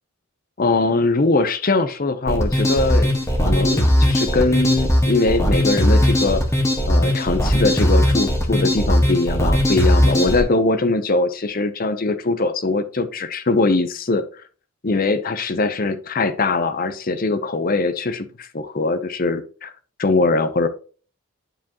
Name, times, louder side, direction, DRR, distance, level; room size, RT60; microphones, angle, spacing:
voice 1, 0.6-3.1 3.5-6.4 6.9-14.2 14.8-19.7 20.0-20.7, left 3 dB, 40° left, 11 dB, 0.7 m, -21 dB
sound 1, 2.3-10.4, equal, 15° left, 1.3 m, -18 dB
9.5 x 5.0 x 2.9 m, 0.38 s
head